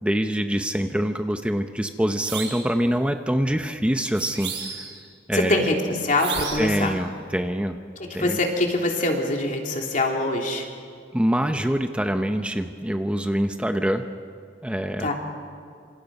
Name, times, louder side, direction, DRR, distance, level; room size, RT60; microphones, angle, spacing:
voice 1, 0.0-4.5 5.3-5.7 6.5-7.8 8.1-8.4 11.1-14.1 14.6-15.1, equal, 5° right, 6 dB, 0.8 m, -25 dB
sound 1, 2.2-2.7 4.1-5.0 6.2-6.8, right 6 dB, 70° right, 6.1 m, -33 dB
voice 2, 5.3-5.8 6.0-6.9 8.0-10.7 15.0-15.1, left 2 dB, 45° left, 1 dB, 3.2 m, -24 dB
27.0 x 26.5 x 5.5 m, 2.3 s
head